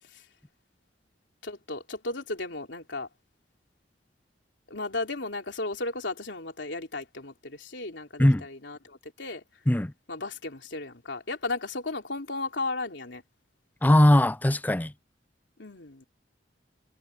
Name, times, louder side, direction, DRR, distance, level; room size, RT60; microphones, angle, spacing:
voice 1, 1.4-3.1 4.7-9.4 10.1-13.2 15.6-16.1, left 2 dB, 80° left, 3.3 m, -35 dB
voice 2, 13.8-14.9, left 1 dB, 10° left, 0.4 m, -20 dB
head